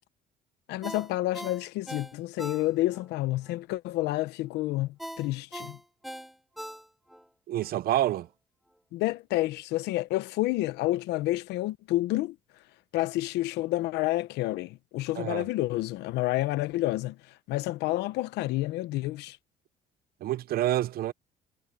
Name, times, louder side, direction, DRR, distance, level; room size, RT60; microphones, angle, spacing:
voice 1, 0.7-5.8 8.9-12.4 12.9-17.2 17.5-19.4, left 17 dB, 90° left, 1.0 m, -29 dB
Ringtone, 0.8-3.1 3.5-3.6 5.0-7.2 7.6-7.7, equal, ahead, 0.7 m, -41 dB
voice 2, 7.5-8.3 15.2-15.4 20.2-21.1, right 13 dB, 65° right, 0.8 m, -27 dB
cardioid pair, 110°, 17 cm